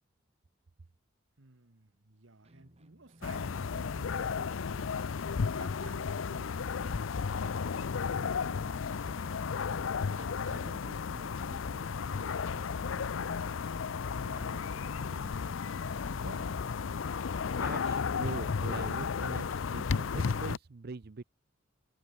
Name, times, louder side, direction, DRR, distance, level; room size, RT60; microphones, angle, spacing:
voice 1, 1.4-13.7 14.2-16.6, right 2 dB, 75° right, 1.8 m, -54 dB
sound 1, 2.4-17.1, right 1 dB, 35° right, 2.0 m, -61 dB
sound 2, 3.2-20.6, left 5 dB, 80° left, 0.5 m, -34 dB
voice 2, 17.4-21.2, right 4 dB, 55° right, 0.6 m, -42 dB
head